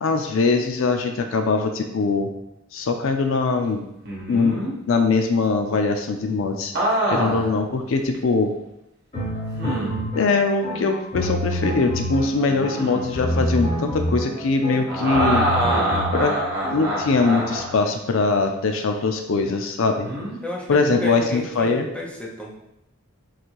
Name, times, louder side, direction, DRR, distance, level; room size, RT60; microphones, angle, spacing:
voice 1, 0.0-2.3 2.7-3.8 4.3-4.6 4.9-6.7 7.1-8.5 10.2-15.5 16.1-16.4 16.7-20.1 20.7-21.9, left 4 dB, 70° left, 6 dB, 0.4 m, -22 dB
sound 1, 4.1-4.7 6.7-7.6 8.1-8.2 9.6-10.1 12.5-13.1 14.9-17.8 20.0-20.4, right 1 dB, 50° right, 1.1 m, -25 dB
sound 2, 9.1-17.0, equal, 30° left, 1.6 m, -27 dB
voice 2, 20.4-22.6, left 1 dB, 5° left, -3 dB, 0.6 m, -32 dB
3.8 x 2.6 x 4.6 m, 0.85 s
head